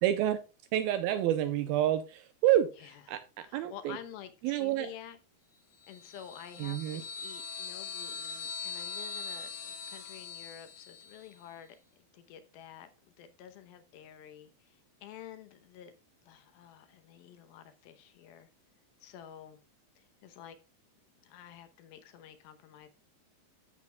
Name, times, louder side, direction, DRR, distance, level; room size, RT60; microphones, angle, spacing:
voice 1, 0.0-0.4 0.7-4.0 4.4-4.9 6.6-7.0, right 12 dB, 90° right, 2.2 m, -29 dB
voice 2, 3.5-5.2 5.9-12.9 13.2-15.9 16.2-18.5 19.0-19.6 20.0-20.6 21.2-22.9, left 10 dB, 75° left, 2.5 m, -50 dB
sound 1, 5.8-11.3, left 6 dB, 90° left, 1.8 m, -41 dB
13.0 x 7.6 x 2.3 m
omnidirectional pair, 4.9 m